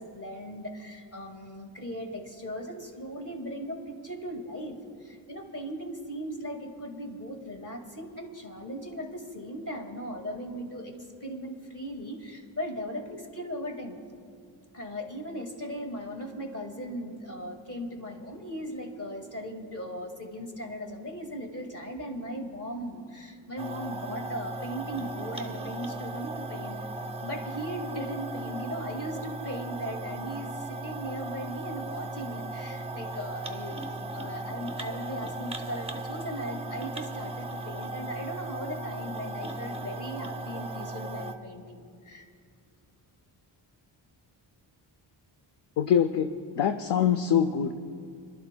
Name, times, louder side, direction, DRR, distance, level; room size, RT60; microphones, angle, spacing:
voice 1, 0.0-14.0 14.7-26.8 27.2-33.8 34.1-42.3, equal, 30° left, 2 dB, 1.9 m, -38 dB
sound 1, 23.6-41.3, right 2 dB, 15° right, 0.6 m, -37 dB
voice 2, 45.8-46.3 46.5-47.7, left 8 dB, 55° left, 8 dB, 0.6 m, -24 dB
28.0 x 12.0 x 2.2 m, 2.2 s
cardioid pair, 95°, 48 cm